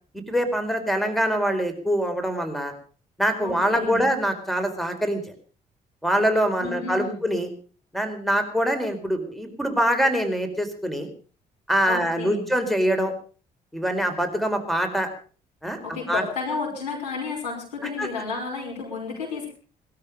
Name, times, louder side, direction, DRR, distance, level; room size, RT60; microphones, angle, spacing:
voice 1, 0.3-2.7 3.2-5.2 6.0-7.5 7.9-11.1 11.7-13.1 13.7-15.1 15.6-15.8 16.1-16.2 18.0-18.1, equal, ahead, 9 dB, 4.6 m, -24 dB
voice 2, 3.4-4.0 6.6-7.2 11.8-12.4 15.8-19.5, left 4 dB, 85° left, -2 dB, 5.7 m, -32 dB
20.5 x 13.0 x 5.2 m, 0.40 s
hypercardioid pair, 45°, 21 cm